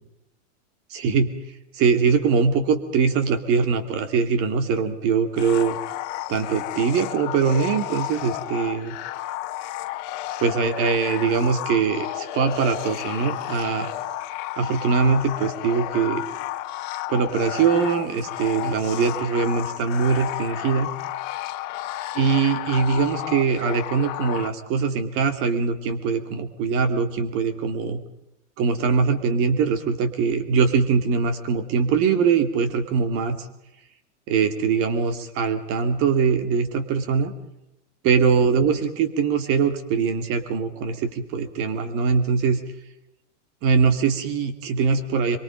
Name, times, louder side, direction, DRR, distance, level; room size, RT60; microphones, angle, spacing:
voice 1, 0.9-1.3 1.7-5.8 6.3-8.9 10.4-13.9 14.6-16.2 17.1-20.9 22.1-28.0 28.6-33.4 34.3-37.3 38.0-42.6 43.6-45.4, right 5 dB, 35° right, 8 dB, 2.8 m, -22 dB
sound 1, 5.4-24.5, left 15 dB, 40° left, 1.6 m, -32 dB
24.5 x 23.0 x 5.3 m, 0.87 s
supercardioid pair, 155°, 37 cm